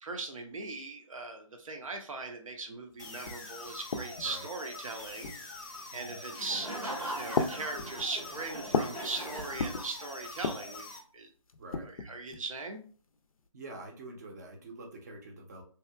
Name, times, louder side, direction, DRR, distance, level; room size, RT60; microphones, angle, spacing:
voice 1, 0.0-5.3 5.9-6.7 7.2-10.9 11.1-11.3 11.8-12.8, right 3 dB, 70° right, 4 dB, 0.6 m, -39 dB
sound 1, 2.9-3.0 3.2-4.4 5.2-5.7 6.5-6.9 7.3-9.1 9.4-9.9 10.3-10.8 11.5-12.5, left 4 dB, 80° left, 0.4 m, -35 dB
sound 2, 3.0-11.0, left 3 dB, 35° left, 0.6 m, -45 dB
voice 2, 5.9-6.3 11.6-11.9 13.5-15.6, right 2 dB, 30° right, 2 dB, 0.5 m, -46 dB
Laughter, 6.3-10.2, right 1 dB, 90° right, 1.2 m, -41 dB
2.8 x 2.3 x 2.2 m, 0.41 s
figure-of-eight pair, 150°, 18 cm